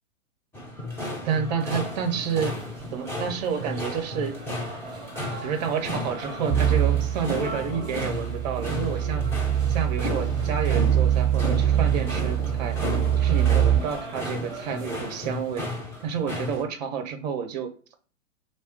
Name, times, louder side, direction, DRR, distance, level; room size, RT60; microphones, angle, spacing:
sound 1, 0.5-16.6, left 2 dB, 5° left, 0.7 m, -35 dB
sound 2, 1.1-15.8, equal, 10° right, 1.3 m, -38 dB
voice 1, 1.2-2.6 2.9-4.4 5.4-9.3 9.7-12.8 13.2-15.7 16.0-17.7, right 7 dB, 30° right, 7 dB, 0.7 m, -29 dB
sound 3, 6.5-13.8, right 10 dB, 70° right, 0.5 m, -24 dB
3.2 x 2.8 x 4.6 m, 0.42 s
figure-of-eight pair, 110°, 40 cm